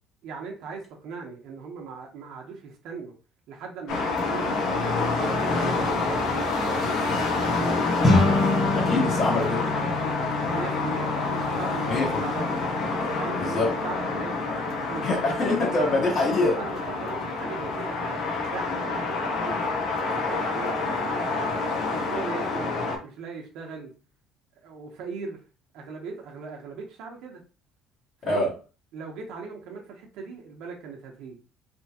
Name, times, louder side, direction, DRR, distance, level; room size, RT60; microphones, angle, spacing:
voice 1, 0.2-3.1 3.5-7.0 7.4-8.2 10.5-12.6 13.0-14.5 14.8-15.5 16.0-19.8 20.1-21.6 21.9-22.7 23.0-23.9 24.6-25.4 25.7-27.4 28.2-28.5 28.9-31.4, right 5 dB, 70° right, 1 dB, 1.0 m, -39 dB
sound 1, 3.9-23.0, left 3 dB, 65° left, 0.9 m, -27 dB
sound 2, 8.0-17.5, left 2 dB, 20° left, 1.4 m, -30 dB
voice 2, 8.7-9.6 11.9-12.2 13.4-13.7 15.0-16.6 28.2-28.5, left 2 dB, 45° left, -5 dB, 1.6 m, -24 dB
3.5 x 3.0 x 2.9 m, 0.35 s
cardioid pair, 155°, 0 cm